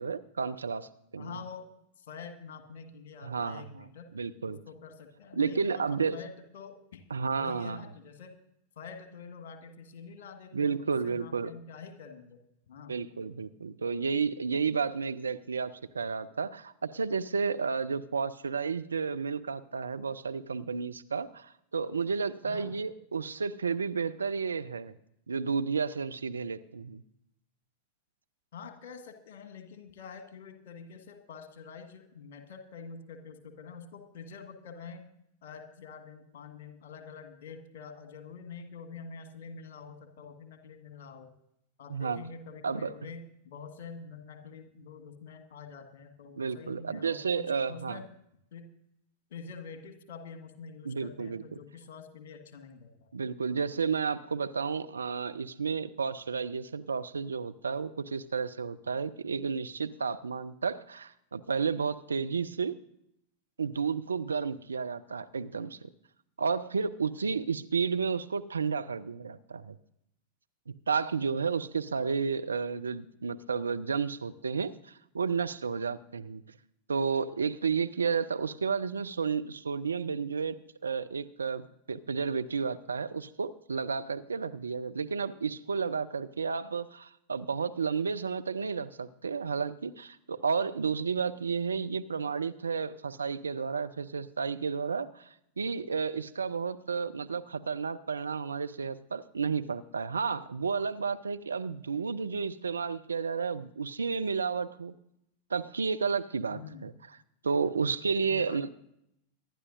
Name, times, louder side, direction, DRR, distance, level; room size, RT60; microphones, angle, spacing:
voice 1, 0.0-1.4 3.2-3.6 4.1-4.6 5.4-6.2 7.1-7.9 10.5-11.5 12.9-24.9 25.3-27.0 41.9-42.2 42.6-42.9 46.4-48.0 50.8-51.6 53.1-62.7 63.6-65.9 66.4-69.8 70.7-76.4 76.9-80.6 80.8-95.3 95.6-104.9 105.5-106.9 107.4-108.7, right 5 dB, 75° right, 10 dB, 0.5 m, -32 dB
voice 2, 1.2-1.7 2.0-4.1 4.4-7.0 7.3-8.4 8.7-12.4 12.7-12.9 22.4-22.7 28.5-35.0 35.4-41.3 41.8-48.1 48.5-48.7 49.3-53.1 106.5-106.9 108.2-108.7, left 5 dB, 55° left, 7 dB, 1.6 m, -46 dB
24.5 x 11.0 x 2.6 m, 0.76 s
figure-of-eight pair, 90°, 0 cm